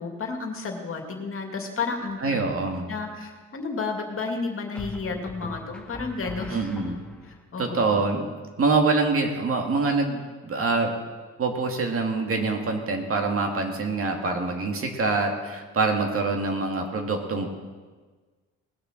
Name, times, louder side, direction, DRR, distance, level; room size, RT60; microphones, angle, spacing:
voice 1, 0.0-2.4 2.9-6.6 7.5-8.0, left 4 dB, 45° left, 3 dB, 2.4 m, -31 dB
sound 1, 2.1-2.6 4.8-7.4, left 2 dB, 5° left, 2.3 m, -40 dB
voice 2, 2.2-2.9 6.5-7.0 7.6-8.3 8.6-10.9 11.4-17.5, right 3 dB, 45° right, 3 dB, 2.2 m, -25 dB
19.5 x 6.8 x 6.5 m, 1.4 s
cardioid pair, 90°, 30 cm